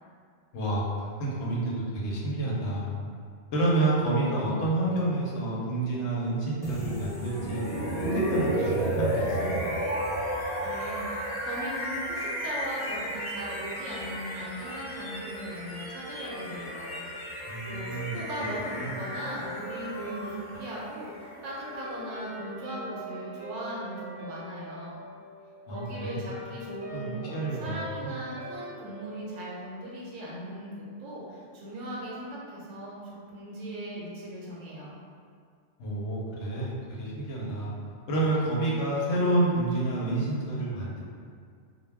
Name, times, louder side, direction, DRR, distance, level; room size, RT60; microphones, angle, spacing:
voice 1, 0.5-2.9 3.5-7.6 8.0-9.5 17.5-18.2 18.8-19.0 25.7-26.2 26.9-28.1 35.8-37.7 38.1-41.0, right 2 dB, 70° left, -5 dB, 0.9 m, -29 dB
sound 1, 6.6-22.5, equal, 25° left, 0.5 m, -33 dB
voice 2, 10.6-17.0 17.7-25.0 25.7-35.0, right 1 dB, 75° right, -5 dB, 0.9 m, -39 dB
Guitar, 16.1-30.7, equal, 10° right, 0.9 m, -44 dB
2.2 x 2.2 x 3.2 m, 2.2 s
omnidirectional pair, 1.3 m